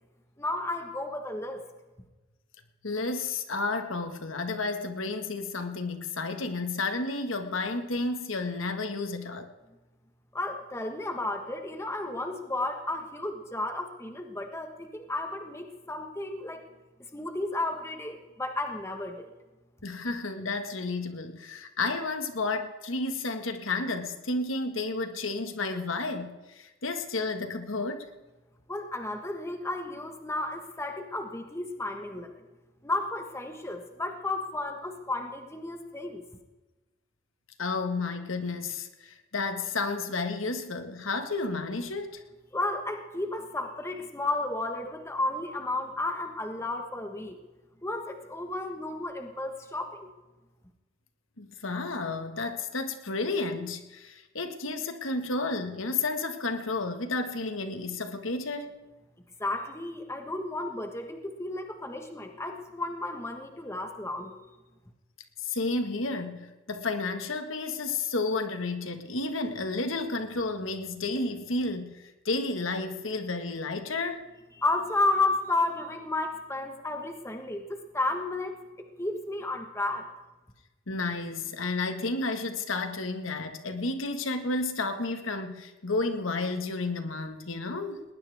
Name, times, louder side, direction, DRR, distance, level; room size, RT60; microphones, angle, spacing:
voice 1, 0.4-1.6 10.3-16.6 17.1-19.3 28.7-32.4 32.8-36.2 42.5-47.4 47.8-50.1 59.4-64.3 74.5-80.1, left 2 dB, 15° left, 4 dB, 1.4 m, -32 dB
voice 2, 2.8-9.5 19.8-28.1 37.6-42.2 51.4-58.7 65.4-74.3 80.9-88.0, left 3 dB, 90° left, 7 dB, 1.7 m, -31 dB
20.0 x 19.5 x 3.6 m, 1.1 s
head